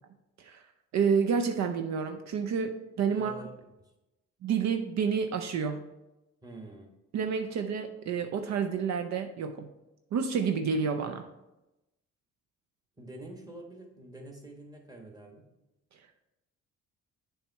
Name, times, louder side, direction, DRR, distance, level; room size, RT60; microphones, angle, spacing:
voice 1, 0.9-3.4 4.4-5.9 7.1-9.7 10.1-11.3, right 6 dB, 65° right, 6 dB, 0.5 m, -29 dB
voice 2, 3.1-3.5 6.4-6.9 13.0-15.5, right 1 dB, 10° right, 2 dB, 1.2 m, -46 dB
7.6 x 3.1 x 4.5 m, 0.96 s
cardioid pair, 90°, 30 cm